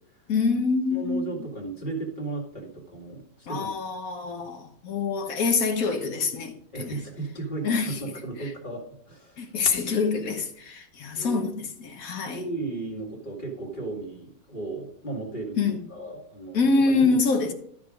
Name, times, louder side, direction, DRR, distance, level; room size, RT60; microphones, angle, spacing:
voice 1, 0.3-1.3 3.5-7.0 7.6-8.0 9.4-12.4 15.6-15.8 16.5-17.5, left 4 dB, 55° left, 1.4 m, -25 dB
voice 2, 0.9-3.7 6.7-9.5 11.1-11.6 12.2-17.2, right 3 dB, 25° left, 2.3 m, -35 dB
13.0 x 5.0 x 5.0 m
omnidirectional pair, 1.9 m